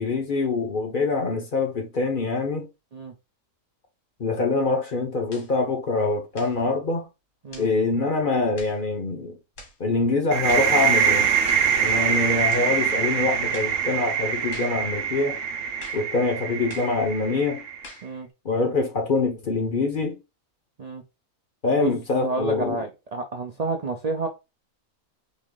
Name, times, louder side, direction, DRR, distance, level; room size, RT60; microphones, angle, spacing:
voice 1, 0.0-2.7 4.2-7.1 7.6-9.4 9.8-11.3 11.8-15.4 15.9-17.6 18.4-20.2 21.6-22.8, left 3 dB, 45° left, 0.8 m, -24 dB
sound 1, 5.3-5.5 6.3-6.6 7.5-7.7 8.6-8.8 9.6-9.8 10.5-10.8 11.5-11.7 12.5-12.7 13.5-13.8 14.5-14.8 15.8-16.1 16.7-17.0 17.8-18.1, left 2 dB, 70° left, 2.1 m, -44 dB
sound 2, 10.3-17.8, right 7 dB, 55° right, 0.7 m, -24 dB
voice 2, 22.2-24.3, right 3 dB, 85° right, 0.3 m, -29 dB
4.1 x 3.1 x 3.7 m
omnidirectional pair, 1.5 m